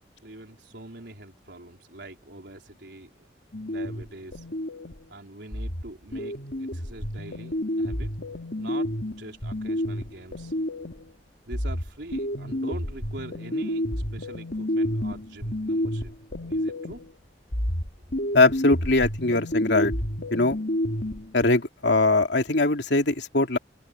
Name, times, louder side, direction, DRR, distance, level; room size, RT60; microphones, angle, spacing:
voice 1, 0.0-3.3 3.7-4.5 5.1-8.2 8.6-10.5 11.5-16.1 16.5-17.1, right 1 dB, 75° right, 4.1 m, -43 dB
sound 1, 3.5-5.1 5.5-11.1 11.5-17.1 17.5-21.5, left 1 dB, 60° left, 3.2 m, -30 dB
voice 2, 18.3-19.9 20.3-20.6 21.3-23.6, left 2 dB, 80° left, 2.7 m, -21 dB
head